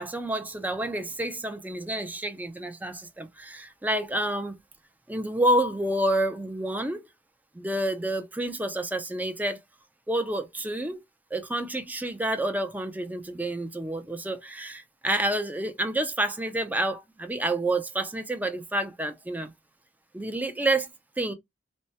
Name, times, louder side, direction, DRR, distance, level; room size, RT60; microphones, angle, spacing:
voice 1, 0.0-4.6 5.1-7.0 7.5-9.6 10.1-11.0 11.3-19.5 20.1-20.9 21.2-21.3, right 1 dB, 10° right, 0.5 m, -29 dB
3.3 x 2.1 x 2.7 m
head